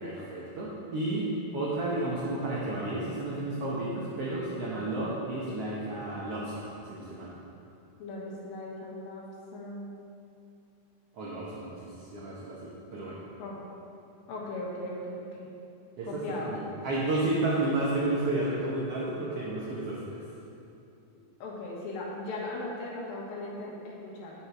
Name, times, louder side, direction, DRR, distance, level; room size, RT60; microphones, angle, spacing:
voice 1, 0.0-7.3 11.1-13.2 16.0-20.2, right 2 dB, 80° right, -6 dB, 1.3 m, -32 dB
voice 2, 8.0-9.2 9.5-9.9 13.4-13.6 14.3-15.5 16.0-16.5 21.4-24.3, left 2 dB, 75° left, -3 dB, 3.0 m, -38 dB
8.5 x 6.7 x 4.6 m, 2.7 s
omnidirectional pair, 4.3 m